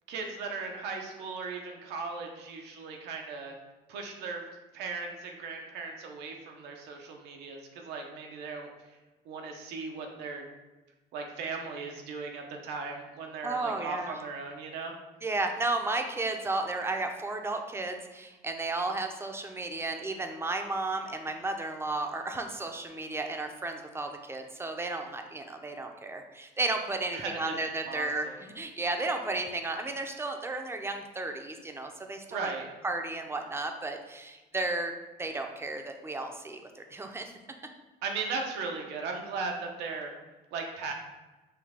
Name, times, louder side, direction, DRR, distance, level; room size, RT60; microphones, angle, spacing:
voice 1, 0.1-3.6 3.9-4.5 4.7-9.0 9.3-10.5 11.1-14.9 27.1-27.6 27.8-28.4 32.3-32.7 38.0-40.1 40.5-40.9, right 4 dB, 90° right, 2 dB, 0.8 m, -37 dB
voice 2, 13.4-14.1 15.2-32.5 32.8-34.9 35.2-37.4, right 2 dB, 15° right, 5 dB, 0.5 m, -33 dB
5.8 x 2.3 x 3.5 m, 1.1 s
cardioid pair, 110°, 17 cm